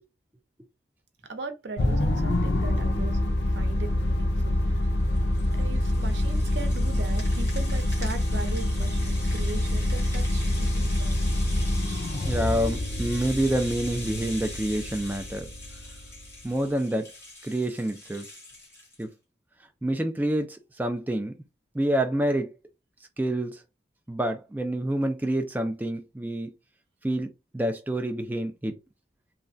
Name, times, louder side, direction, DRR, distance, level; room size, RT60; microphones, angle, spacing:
voice 1, 1.3-5.1 5.5-11.4, right 3 dB, 75° right, 0.7 m, -39 dB
sound 1, 1.8-16.3, left 1 dB, 65° left, 0.6 m, -26 dB
Rattle (instrument), 4.8-19.0, left 1 dB, 15° left, 1.1 m, -43 dB
voice 2, 12.3-15.5 16.4-17.1 17.4-18.2 19.0-19.1 19.8-21.4 21.7-22.5 23.2-23.6 24.1-26.5 27.0-28.7, right 1 dB, 10° right, 0.3 m, -27 dB
3.2 x 2.2 x 2.5 m
head